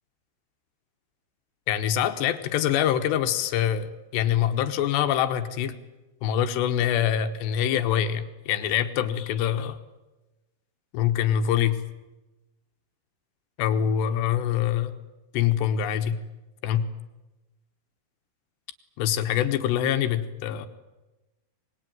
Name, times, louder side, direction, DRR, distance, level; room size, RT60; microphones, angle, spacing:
voice 1, 1.7-5.7 6.2-9.8 10.9-11.8 13.6-14.9 15.3-16.2 16.6-16.9 19.0-20.7, left 10 dB, 75° left, 8 dB, 3.2 m, -24 dB
25.5 x 20.5 x 9.3 m, 1.1 s
omnidirectional pair, 5.4 m